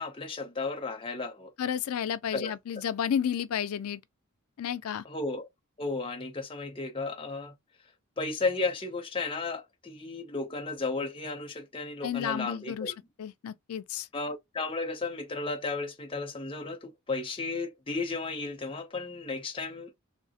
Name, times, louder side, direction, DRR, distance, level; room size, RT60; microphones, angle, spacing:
voice 1, 0.0-1.5 2.3-2.5 5.0-5.5 5.8-7.5 8.2-13.0 14.1-19.9, left 3 dB, 25° left, 0.6 m, -34 dB
voice 2, 1.6-4.0 4.6-5.0 12.0-12.9 13.2-14.1, left 8 dB, 80° left, 0.4 m, -31 dB
3.1 x 2.0 x 2.7 m
head